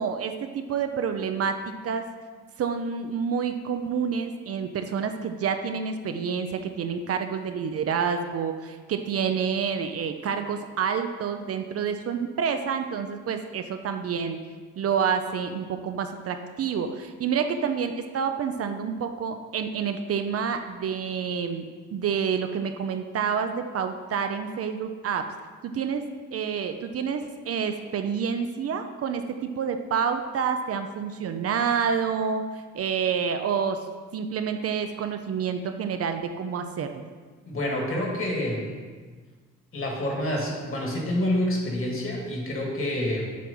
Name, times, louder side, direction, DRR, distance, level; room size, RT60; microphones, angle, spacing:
voice 1, 0.0-2.1 2.6-14.4 14.8-21.7 21.9-25.3 25.6-26.0 26.3-32.5 32.7-33.8 34.1-37.1, right 6 dB, 50° right, 7 dB, 0.5 m, -28 dB
voice 2, 37.5-38.7 39.7-43.3, left 1 dB, 45° left, -1 dB, 2.0 m, -27 dB
7.5 x 3.4 x 5.3 m, 1.5 s
cardioid pair, 90°, 30 cm